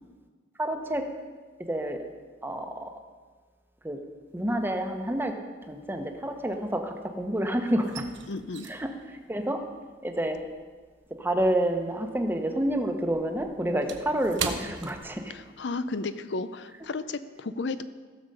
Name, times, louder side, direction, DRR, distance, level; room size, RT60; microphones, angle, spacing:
voice 1, 0.6-1.0 1.7-2.0 2.4-2.9 3.8-4.0 4.3-5.3 5.7-8.1 8.7-8.9 9.3-9.6 10.0-10.4 11.2-15.3, right 1 dB, 10° right, 5 dB, 1.0 m, -28 dB
sound 1, 4.4-4.9 5.2-7.2 7.5-12.1 12.4-15.7 16.0-16.2 16.7-17.0, right 6 dB, 75° right, 0.9 m, -40 dB
voice 2, 8.3-8.7 15.3-17.8, left 3 dB, 65° left, 13 dB, 0.6 m, -33 dB
16.0 x 7.1 x 5.5 m, 1.4 s
head